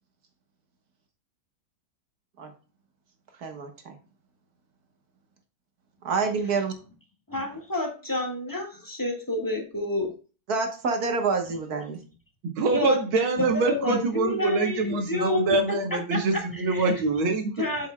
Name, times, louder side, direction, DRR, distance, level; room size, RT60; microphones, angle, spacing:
voice 1, 3.4-4.0 6.0-6.7 10.5-12.0, right 4 dB, 55° right, 5 dB, 1.5 m, -27 dB
voice 2, 7.3-10.1 12.7-13.0 13.4-16.9 17.6-17.9, left 1 dB, 10° left, 1 dB, 1.4 m, -30 dB
voice 3, 12.6-17.7, right 3 dB, 85° right, 5 dB, 2.1 m, -25 dB
7.5 x 7.0 x 2.2 m, 0.36 s
omnidirectional pair, 2.2 m